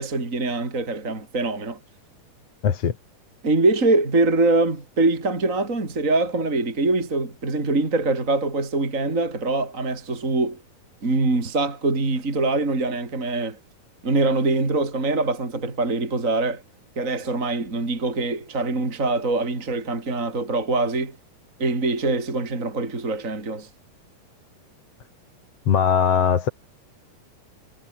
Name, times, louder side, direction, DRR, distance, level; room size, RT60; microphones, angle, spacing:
voice 1, 0.0-1.8 3.4-10.6 11.0-13.6 14.0-16.6 17.0-21.2 21.6-23.7, right 2 dB, 25° right, 4.2 m, -23 dB
voice 2, 2.6-2.9 25.7-26.5, left 7 dB, 50° left, 2.8 m, -19 dB
omnidirectional pair, 3.8 m